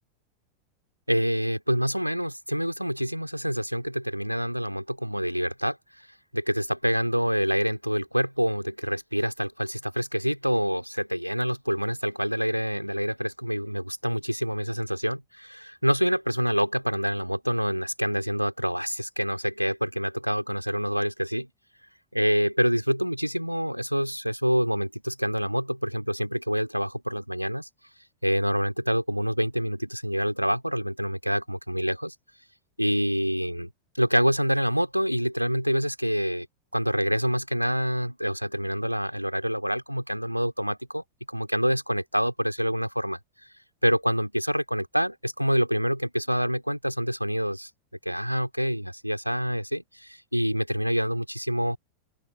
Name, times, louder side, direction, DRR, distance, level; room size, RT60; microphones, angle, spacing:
voice 1, 1.1-5.8 6.3-21.5 22.1-27.7 28.2-32.1 32.8-33.7 34.0-36.5 36.7-43.2 43.8-47.7 48.0-51.8, equal, 90° right, 3.2 m, -26 dB
open air
figure-of-eight pair, 90°, 0 cm